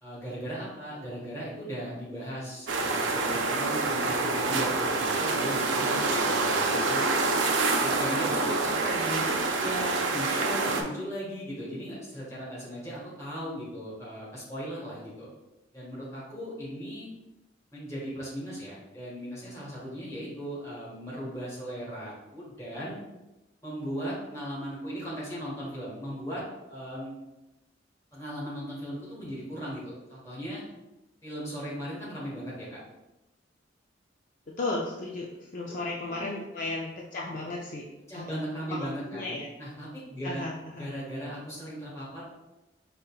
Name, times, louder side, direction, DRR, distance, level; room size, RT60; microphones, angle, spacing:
voice 1, 0.0-7.1 7.8-15.3 15.7-17.1 17.7-23.0 23.6-26.4 26.7-27.2 28.1-30.6 31.2-32.8 35.6-35.8 36.1-36.4 38.1-40.5 40.8-42.2, equal, 15° left, -8 dB, 1.5 m, -37 dB
sound 1, 2.7-10.8, right 3 dB, 80° right, 0.5 m, -27 dB
voice 2, 34.6-37.8 38.1-38.4 38.7-39.5 40.2-40.9, left 2 dB, 45° left, -2 dB, 0.4 m, -35 dB
5.1 x 2.8 x 2.3 m, 0.98 s
head